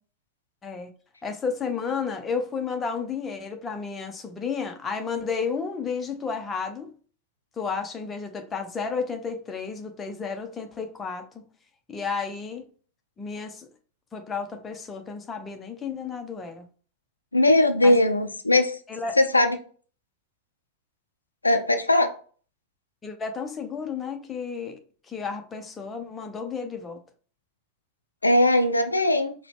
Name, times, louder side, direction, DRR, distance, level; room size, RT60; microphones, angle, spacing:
voice 1, 1.2-6.9 7.6-11.4 11.9-12.7 13.2-13.7 14.1-16.6 17.8-18.0 18.9-19.2 23.0-24.8 25.1-27.0, left 5 dB, 20° left, 0.6 m, -32 dB
voice 2, 17.3-18.8 19.2-19.6 21.4-22.1 28.2-29.3, left 1 dB, 80° left, 0.4 m, -20 dB
4.8 x 2.2 x 3.3 m
figure-of-eight pair, 90°, 0 cm